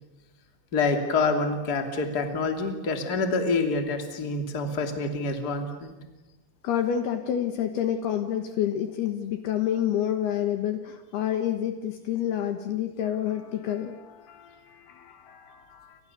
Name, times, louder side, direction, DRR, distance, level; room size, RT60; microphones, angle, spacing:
voice 1, 0.7-5.9, left 3 dB, 25° left, 5 dB, 2.4 m, -27 dB
voice 2, 6.6-16.0, left 10 dB, 70° left, 7 dB, 2.9 m, -29 dB
29.5 x 27.0 x 7.0 m, 1.1 s
omnidirectional pair, 5.4 m